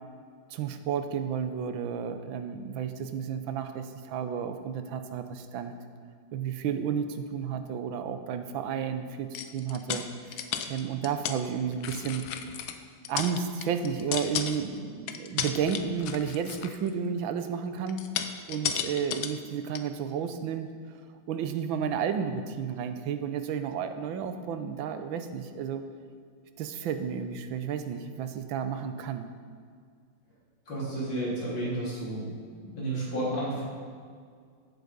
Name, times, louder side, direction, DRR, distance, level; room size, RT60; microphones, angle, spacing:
voice 1, 0.5-5.7 6.3-12.3 13.1-18.0 18.5-21.0 21.3-25.8 26.6-29.3, right 7 dB, 85° right, 8 dB, 1.6 m, -32 dB
sound 1, 9.3-11.4 11.7-12.8 13.0-14.8 15.1-16.9 17.9-19.4 19.7-19.8, left 9 dB, 90° left, 1.5 m, -34 dB
voice 2, 30.7-32.3 32.6-33.6, right 1 dB, 65° left, -6 dB, 4.2 m, -31 dB
14.5 x 8.1 x 5.3 m, 2.1 s
omnidirectional pair, 2.1 m